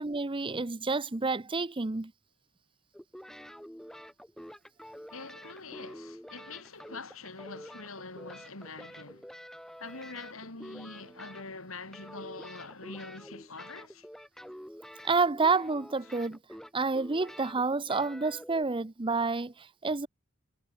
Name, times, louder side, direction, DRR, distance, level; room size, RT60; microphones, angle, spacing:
voice 1, 0.0-2.1 15.0-16.4 16.7-20.1, right 4 dB, 25° right, 0.7 m, -29 dB
sound 1, 2.9-11.7 11.9-18.7, equal, ahead, 2.5 m, -48 dB
voice 2, 5.1-9.3 9.8-14.1 16.1-16.2, left 3 dB, 85° left, 5.6 m, -44 dB
head